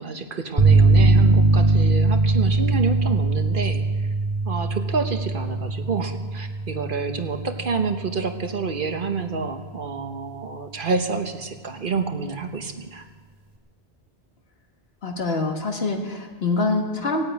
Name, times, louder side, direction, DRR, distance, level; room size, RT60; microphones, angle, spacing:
voice 1, 0.0-4.1 4.4-13.1, right 4 dB, 55° right, 6 dB, 1.2 m, -28 dB
sound 1, 0.6-8.3, right 2 dB, 25° right, 2.8 m, -20 dB
voice 2, 15.0-17.2, left 3 dB, 70° left, 3 dB, 1.9 m, -25 dB
17.0 x 8.6 x 9.2 m, 1.5 s
omnidirectional pair, 1.1 m